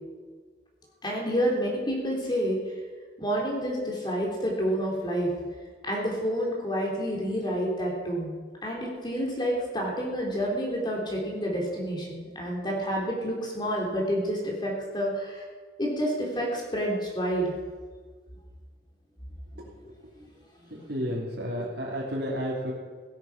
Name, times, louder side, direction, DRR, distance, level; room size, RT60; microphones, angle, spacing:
voice 1, 1.0-2.6 3.2-5.3 5.8-8.3 8.6-15.4 15.8-17.5 19.6-19.7 20.2-20.3 20.6-20.9 21.6-21.7, equal, 25° left, -2 dB, 3.6 m, -29 dB
voice 2, 20.7-22.7, equal, 70° right, -6 dB, 3.2 m, -32 dB
17.5 x 12.5 x 5.9 m, 1.5 s
head